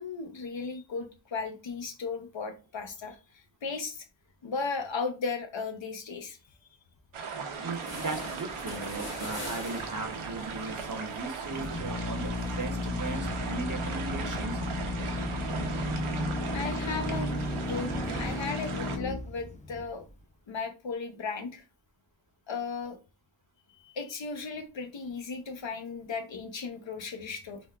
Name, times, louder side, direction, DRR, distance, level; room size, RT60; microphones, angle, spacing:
voice 1, 0.0-4.0 4.4-6.4 16.5-20.0 20.5-21.6 22.5-23.0 23.7-27.6, left 4 dB, 70° left, 6 dB, 0.7 m, -36 dB
sound 1, 7.1-19.0, right 4 dB, 90° right, 0.6 m, -37 dB
sound 2, 7.4-7.5 7.7-13.2, left 1 dB, 50° left, 1.3 m, -44 dB
voice 2, 7.6-14.6, right 3 dB, 40° right, 5 dB, 0.7 m, -37 dB
Drill, 11.4-20.1, left 3 dB, 15° left, 0.3 m, -34 dB
3.4 x 2.2 x 2.2 m, 0.30 s
wide cardioid pair, 60°, 48 cm